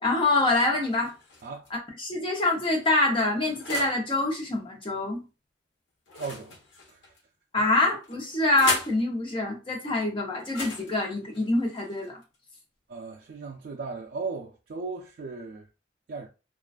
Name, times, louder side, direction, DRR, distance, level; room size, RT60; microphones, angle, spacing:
voice 1, 0.0-1.1 1.7-5.2 7.5-12.2, left 2 dB, 30° left, 0.7 m, -25 dB
sound 1, 0.9-1.7 2.4-4.1 6.1-7.2 8.0-9.0 10.4-12.4, left 3 dB, 75° left, 0.6 m, -37 dB
voice 2, 6.2-6.6 6.9-7.0 7.6-7.7 12.9-15.7 16.1-16.3, right 4 dB, 55° right, 0.3 m, -36 dB
2.4 x 2.2 x 2.4 m
head